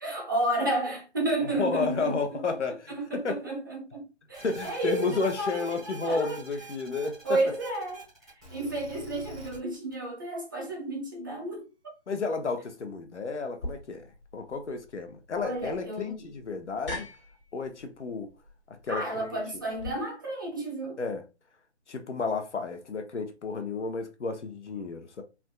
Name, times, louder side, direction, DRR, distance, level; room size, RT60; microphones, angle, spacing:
voice 1, 0.0-2.4 3.0-6.4 7.2-8.0 8.5-11.7 15.3-16.3 18.9-21.0, right 2 dB, 20° right, 0.5 m, -31 dB
voice 2, 1.6-3.4 4.4-7.4 12.1-14.1 14.3-17.0 17.5-18.3 18.7-19.3 21.0-21.2 21.9-25.2, left 4 dB, 85° left, 0.8 m, -32 dB
sound 1, 4.3-9.9, right 2 dB, ahead, 1.1 m, -46 dB
sound 2, 13.6-19.9, left 1 dB, 50° left, 1.2 m, -43 dB
3.4 x 2.5 x 2.3 m
figure-of-eight pair, 150°, 34 cm